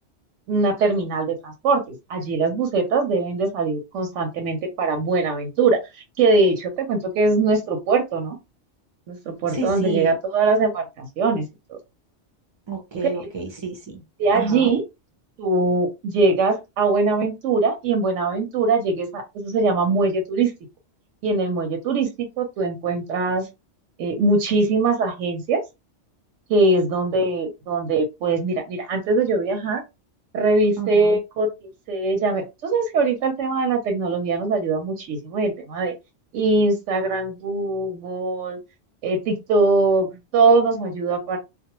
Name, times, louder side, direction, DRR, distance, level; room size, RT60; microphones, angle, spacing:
voice 1, 0.5-5.8 6.2-8.4 9.1-11.8 13.0-13.1 14.2-14.8 15.4-20.5 21.2-23.5 24.0-25.6 26.5-29.8 30.3-35.9 36.3-38.6 39.0-41.4, right 3 dB, 90° right, 5 dB, 0.9 m, -22 dB
voice 2, 9.5-10.1 12.7-14.0 14.3-14.7 30.8-31.2, right 4 dB, 40° right, 3 dB, 0.4 m, -30 dB
2.2 x 2.0 x 2.8 m, 0.24 s
omnidirectional pair, 1.2 m